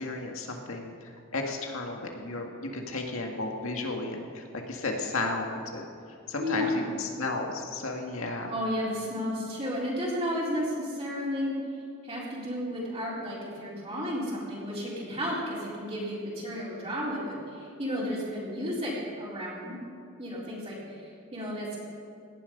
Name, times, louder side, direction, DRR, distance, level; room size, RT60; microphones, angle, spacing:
voice 1, 0.0-5.8 6.3-8.5, left 2 dB, 85° left, 1 dB, 1.9 m, -33 dB
voice 2, 6.4-6.8 8.5-11.5 12.0-19.8 20.2-21.8, equal, 30° right, -7 dB, 3.9 m, -33 dB
17.5 x 11.0 x 5.3 m, 2.4 s
head